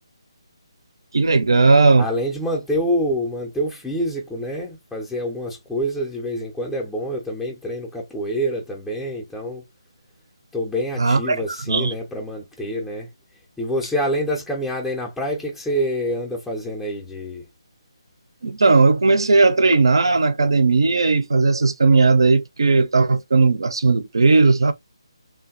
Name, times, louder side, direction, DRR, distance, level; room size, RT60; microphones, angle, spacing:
voice 1, 1.1-2.1 11.0-11.4 11.7-11.9 18.4-24.7, right 3 dB, 60° right, 0.4 m, -16 dB
voice 2, 2.0-9.6 10.5-13.1 13.6-17.4, equal, 5° left, 0.4 m, -26 dB
3.2 x 2.2 x 2.4 m
figure-of-eight pair, 150°, 3 cm